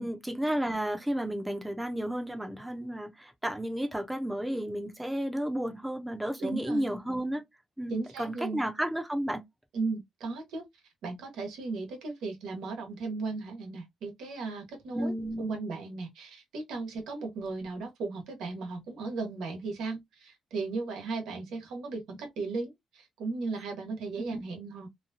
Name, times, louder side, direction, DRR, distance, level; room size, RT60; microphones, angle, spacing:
voice 1, 0.0-7.4 7.8-9.4 14.9-15.5 24.2-24.4, right 1 dB, 10° right, 0.8 m, -32 dB
voice 2, 6.4-6.8 7.9-8.6 9.7-10.6 11.0-24.9, right 3 dB, 85° right, 1.3 m, -36 dB
3.0 x 2.2 x 2.7 m
cardioid pair, 90°, 0 cm